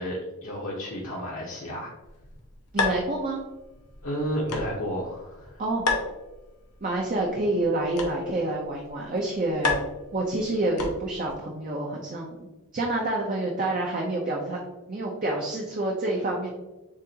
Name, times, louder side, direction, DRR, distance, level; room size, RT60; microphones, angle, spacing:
voice 1, 0.0-1.9 4.0-5.6, equal, 65° left, -5 dB, 1.0 m, -32 dB
sound 1, 2.0-11.3, left 3 dB, 90° left, 1.0 m, -34 dB
voice 2, 2.7-3.4 5.6-5.9 6.8-9.8 10.1-14.6 14.9-16.5, right 2 dB, 35° right, -1 dB, 0.6 m, -28 dB
7.3 x 2.5 x 2.8 m, 1.1 s
head